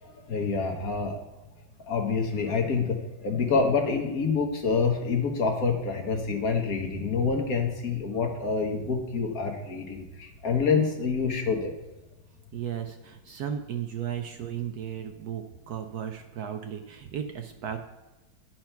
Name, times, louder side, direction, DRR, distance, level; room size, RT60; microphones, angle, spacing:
voice 1, 0.0-1.3 1.8-11.7, left 5 dB, 55° left, 3 dB, 1.4 m, -27 dB
voice 2, 12.5-17.8, right 9 dB, 70° right, 6 dB, 1.0 m, -35 dB
10.5 x 4.5 x 5.7 m, 1.1 s
omnidirectional pair, 2.0 m